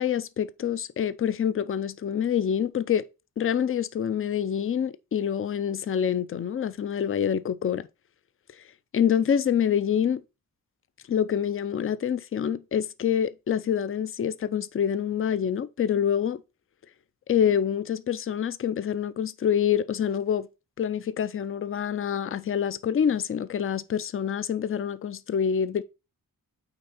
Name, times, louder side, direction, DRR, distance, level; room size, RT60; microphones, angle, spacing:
voice 1, 0.0-3.0 3.4-7.9 8.9-10.2 11.1-16.4 17.3-20.5 20.8-25.8, left 8 dB, 40° left, 0.5 m, -26 dB
9.0 x 3.9 x 4.2 m
wide cardioid pair, 135°, 35 cm